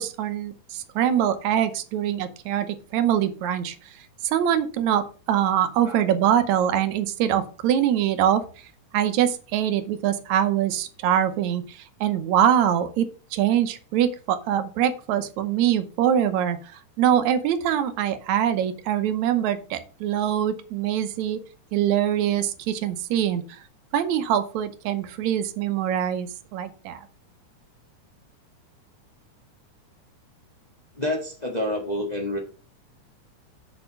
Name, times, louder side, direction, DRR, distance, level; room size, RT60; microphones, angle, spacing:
voice 1, 0.0-3.8 4.2-8.4 8.9-21.4 21.7-23.6 23.9-27.1, right 10 dB, 75° right, 10 dB, 2.1 m, -23 dB
voice 2, 30.9-32.4, left 1 dB, 50° left, 1 dB, 0.5 m, -28 dB
7.0 x 5.5 x 6.7 m, 0.38 s
omnidirectional pair, 3.6 m